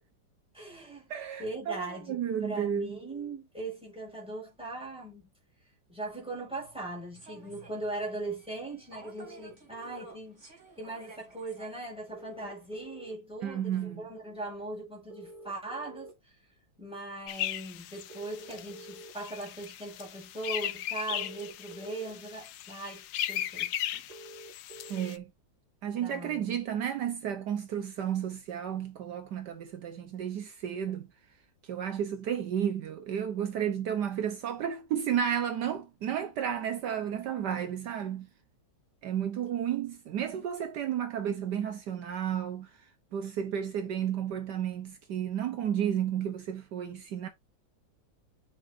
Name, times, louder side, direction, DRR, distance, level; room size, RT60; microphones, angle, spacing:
voice 1, 0.5-1.1 1.4-5.2 5.9-10.4 10.8-16.3 16.8-24.0 24.7-25.0 26.0-26.6, right 2 dB, 5° right, 5.2 m, -40 dB
voice 2, 1.1-3.0 13.4-14.0 24.9-25.3 25.8-31.1 31.7-38.3 39.0-42.7 43.1-47.3, right 9 dB, 70° right, 1.5 m, -32 dB
Human voice / Subway metro underground, 7.1-12.9, right 3 dB, 40° right, 3.9 m, -54 dB
sound 1, 9.2-10.1 12.1-13.1 15.1-16.1 18.1-19.1 21.1-22.1 24.1-25.1, right 1 dB, 45° left, 5.3 m, -48 dB
sound 2, 17.3-25.2, left 12 dB, 70° left, 1.2 m, -37 dB
9.5 x 6.3 x 2.6 m
omnidirectional pair, 2.0 m